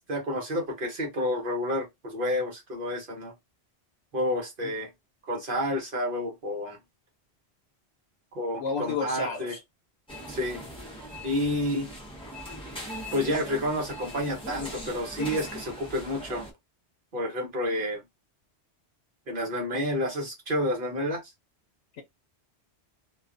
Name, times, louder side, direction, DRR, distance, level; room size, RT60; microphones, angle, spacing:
voice 1, 0.1-3.3 4.1-4.9 5.3-6.8 8.3-9.6 10.3-10.6 11.2-11.9 13.1-16.5 17.1-18.0 19.3-21.2, left 1 dB, 55° right, 1.1 m, -29 dB
voice 2, 8.6-9.6, left 5 dB, 85° left, 0.9 m, -31 dB
sound 1, 10.1-16.5, equal, 5° left, 0.7 m, -40 dB
2.3 x 2.3 x 2.4 m
omnidirectional pair, 1.1 m